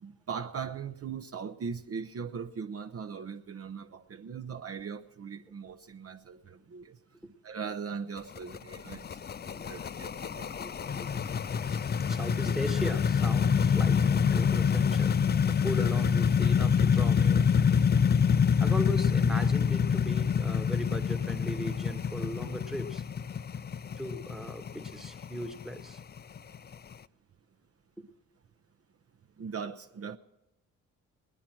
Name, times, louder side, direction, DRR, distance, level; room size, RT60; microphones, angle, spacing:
voice 1, 0.0-7.0 7.4-10.5 29.4-30.2, right 6 dB, 45° right, 0.7 m, -39 dB
sound 1, 8.2-26.9, left 7 dB, 30° left, 0.4 m, -26 dB
voice 2, 10.4-11.3 11.7-17.9 18.6-23.1 24.0-26.0 28.0-28.1, equal, ahead, 1.1 m, -38 dB
19.0 x 10.0 x 6.0 m
supercardioid pair, 55°, 35 cm